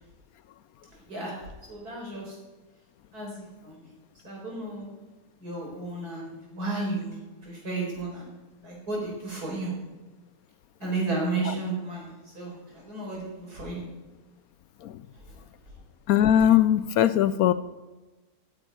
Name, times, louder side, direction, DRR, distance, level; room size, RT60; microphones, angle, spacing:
voice 1, 1.1-2.4 3.1-3.9 4.2-4.9 5.4-8.4 8.6-9.7 10.8-13.8, right 3 dB, 70° right, -3 dB, 5.3 m, -33 dB
voice 2, 16.1-17.5, left 10 dB, 70° left, 13 dB, 1.0 m, -20 dB
10.5 x 7.8 x 9.4 m, 1.2 s
omnidirectional pair, 1.7 m